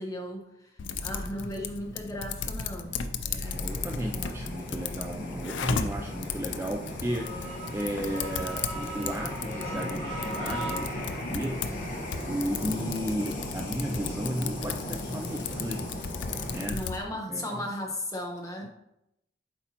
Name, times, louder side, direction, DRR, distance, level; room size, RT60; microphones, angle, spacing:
voice 1, 0.0-3.0 16.7-18.7, left 1 dB, 15° left, 0 dB, 0.9 m, -36 dB
Typing, 0.8-17.0, left 5 dB, 80° left, 0.5 m, -36 dB
sound 1, 2.3-2.4 3.0-3.1 3.6-3.7 4.3-4.4 4.9-5.1 5.6-5.7 6.2-6.3 6.9-11.6 12.1-13.0 13.4-14.3 14.7-15.7 16.0-17.0, right 2 dB, 80° right, 1.4 m, -42 dB
voice 2, 3.2-11.0 11.3-11.6 12.3-16.0 16.5-16.8 17.3-17.6 18.6-18.7, equal, 15° right, 1 dB, 0.3 m, -34 dB
sound 2, 3.4-16.7, left 1 dB, 45° left, 1.1 m, -37 dB
8.0 x 4.3 x 2.9 m, 0.83 s
head